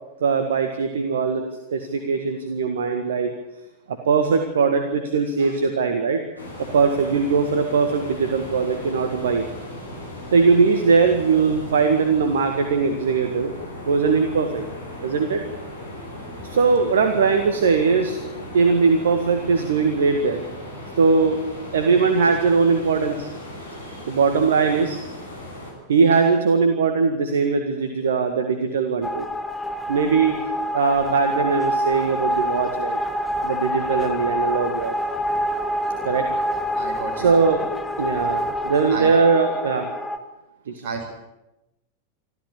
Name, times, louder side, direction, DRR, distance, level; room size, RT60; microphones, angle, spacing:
voice 1, 0.2-1.4 1.7-3.3 3.9-6.2 6.7-9.4 10.3-13.5 13.9-14.6 15.0-15.4 16.4-18.2 18.5-20.4 21.0-21.4 21.7-23.3 23.6-25.0 25.9-29.3 29.9-30.3 30.7-33.0 33.4-34.9 36.0-36.3 37.2-37.6 38.0-39.9 40.7-40.8, right 5 dB, 65° right, 7 dB, 1.8 m, -20 dB
sound 1, 6.4-25.7, left 1 dB, 85° left, 6.5 m, -37 dB
sound 2, 29.0-40.2, equal, 10° left, 1.8 m, -26 dB
voice 2, 36.7-37.5 38.9-39.1 40.8-41.1, right 4 dB, 45° right, 4 dB, 6.0 m, -32 dB
25.5 x 14.0 x 8.6 m, 0.95 s
figure-of-eight pair, 90°, 0 cm